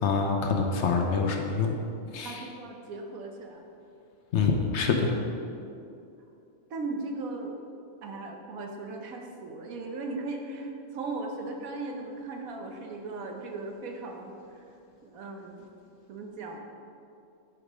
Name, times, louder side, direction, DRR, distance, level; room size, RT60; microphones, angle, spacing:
voice 1, 0.0-1.8 2.1-2.4 4.3-5.2, left 5 dB, 65° left, 3 dB, 0.8 m, -26 dB
voice 2, 2.2-3.6 5.6-5.8 6.7-7.6 8.0-14.6 15.0-15.7 16.1-16.6, right 3 dB, 80° right, 3 dB, 1.2 m, -37 dB
6.5 x 4.9 x 5.0 m, 2.6 s
omnidirectional pair, 1.5 m